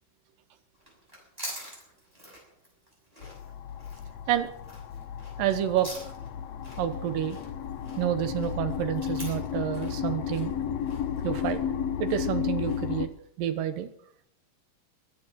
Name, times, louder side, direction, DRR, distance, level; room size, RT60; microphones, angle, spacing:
sound 1, 0.7-13.0, equal, 10° right, 6.5 m, -46 dB
sound 2, 3.2-13.1, left 8 dB, 65° left, 1.6 m, -33 dB
voice 1, 5.4-5.9 6.8-7.4 8.0-10.5 11.2-11.6 12.0-13.1 13.4-13.9, right 11 dB, 80° right, 11 dB, 2.7 m, -28 dB
21.5 x 9.4 x 6.2 m, 0.66 s
omnidirectional pair, 3.9 m